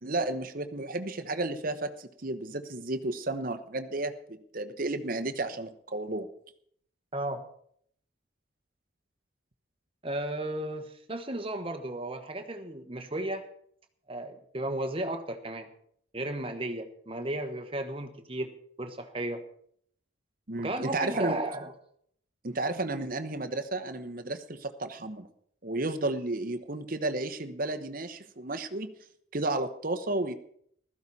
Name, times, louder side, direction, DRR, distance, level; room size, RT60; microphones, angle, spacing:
voice 1, 0.0-6.3 20.5-21.4 22.4-25.3 25.6-28.9 29.3-30.3, right 2 dB, 45° right, 9 dB, 1.0 m, -32 dB
voice 2, 7.1-7.5 10.0-13.4 14.1-15.7 16.1-19.4 20.6-21.7, right 1 dB, 25° right, 7 dB, 1.3 m, -34 dB
15.5 x 13.5 x 4.2 m, 0.66 s
head